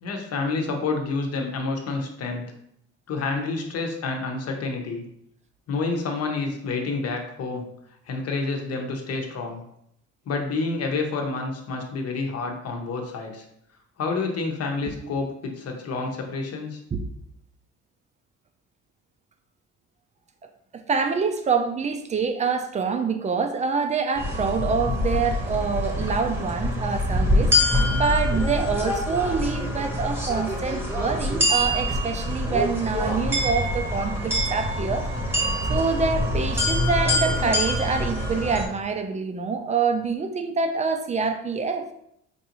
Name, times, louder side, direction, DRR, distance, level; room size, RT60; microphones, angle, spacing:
voice 1, 0.0-2.4 3.1-5.0 5.7-7.7 8.1-9.6 10.3-13.4 14.0-16.8, left 3 dB, 55° left, 3 dB, 0.9 m, -28 dB
voice 2, 20.9-27.5 27.9-35.1 35.7-41.9, right 5 dB, 25° right, 6 dB, 0.5 m, -26 dB
sound 1, 24.1-38.6, left 1 dB, 10° right, 0.9 m, -25 dB
4.7 x 2.6 x 2.9 m, 0.75 s
cardioid pair, 95°, 30 cm